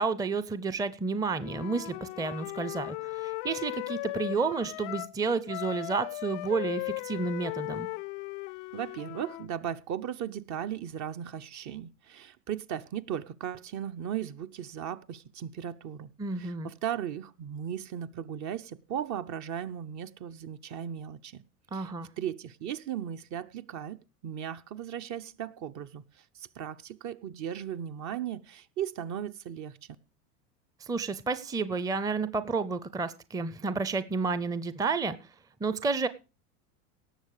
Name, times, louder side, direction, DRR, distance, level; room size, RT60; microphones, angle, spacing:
voice 1, 0.0-7.9 16.2-16.7 21.7-22.1 30.8-35.2 35.6-36.1, right 4 dB, 10° right, 14 dB, 0.6 m, -31 dB
Wind instrument woodwind instrument, 1.4-5.1 5.5-9.5, left 23 dB, 55° left, 0.5 m, -37 dB
voice 2, 8.7-16.1 16.4-21.4 21.7-30.0, right 9 dB, 40° right, 10 dB, 0.8 m, -37 dB
18.0 x 6.8 x 4.8 m, 0.32 s
hypercardioid pair, 90°, 44 cm